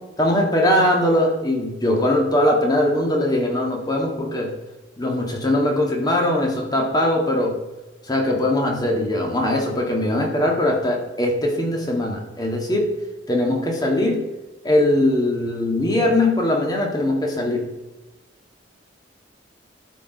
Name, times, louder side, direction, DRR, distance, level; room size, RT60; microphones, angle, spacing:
voice 1, 0.2-4.5 5.0-7.5 8.1-12.9 13.3-14.2 14.6-17.6, left 1 dB, 20° left, 0 dB, 1.9 m, -21 dB
12.0 x 4.7 x 5.4 m, 1.1 s
head